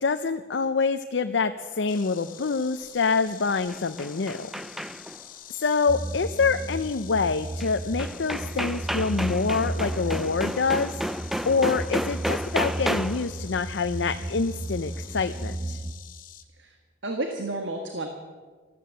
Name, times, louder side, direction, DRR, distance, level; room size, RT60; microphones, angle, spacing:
voice 1, 0.0-4.5 5.5-11.0 11.5-15.8, left 4 dB, 70° left, 8 dB, 0.6 m, -26 dB
Insect, 1.9-16.4, left 11 dB, 50° left, 1.0 m, -47 dB
sound 1, 3.5-5.2 7.6-7.7 8.0-13.3, equal, ahead, 0.4 m, -31 dB
sound 2, 5.9-15.9, right 1 dB, 30° right, 1.2 m, -34 dB
voice 2, 17.0-18.1, right 2 dB, 80° right, 4 dB, 1.5 m, -31 dB
14.0 x 14.0 x 7.5 m, 1.4 s
head